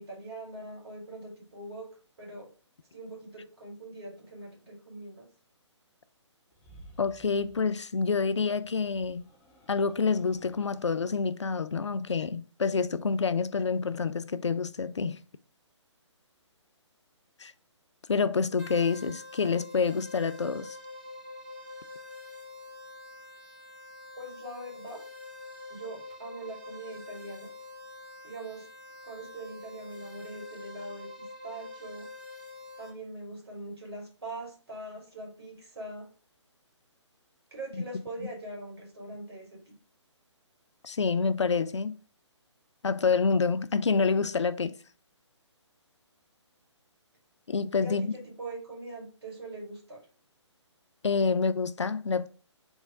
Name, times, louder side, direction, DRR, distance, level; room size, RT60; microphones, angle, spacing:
voice 1, 0.0-1.9 2.2-2.5 2.9-5.3 24.2-25.0 25.7-27.5 28.2-28.7 29.0-32.1 32.8-36.1 37.5-39.7 47.8-50.0, right 2 dB, 55° right, 2.2 m, -42 dB
sound 1, 6.5-7.8 8.6-11.2, equal, 15° left, 0.6 m, -55 dB
voice 2, 7.0-9.3 9.7-15.2 17.4-17.5 18.1-20.8 40.8-42.0 42.8-44.7 47.5-48.1 51.0-52.3, left 5 dB, 70° left, 0.4 m, -27 dB
sound 2, 18.6-32.9, left 2 dB, 20° right, 1.5 m, -46 dB
3.6 x 3.1 x 4.7 m
figure-of-eight pair, 135°, 16 cm